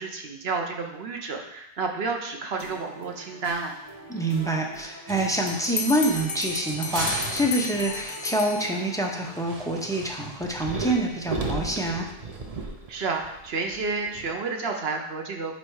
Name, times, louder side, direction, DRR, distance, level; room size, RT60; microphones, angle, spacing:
voice 1, 0.0-3.7 12.9-15.5, right 4 dB, 75° right, 3 dB, 1.0 m, -30 dB
sound 1, 2.6-9.4, right 1 dB, 20° right, 1.2 m, -44 dB
voice 2, 4.1-12.1, right 1 dB, 5° left, 0 dB, 0.7 m, -26 dB
sound 2, 5.1-6.0 6.3-6.4 6.7-8.0 9.2-14.3, right 3 dB, 40° right, 0.8 m, -35 dB
Bell, 5.5-9.1, left 4 dB, 80° left, 1.1 m, -33 dB
8.2 x 3.3 x 4.8 m, 0.82 s
omnidirectional pair, 1.1 m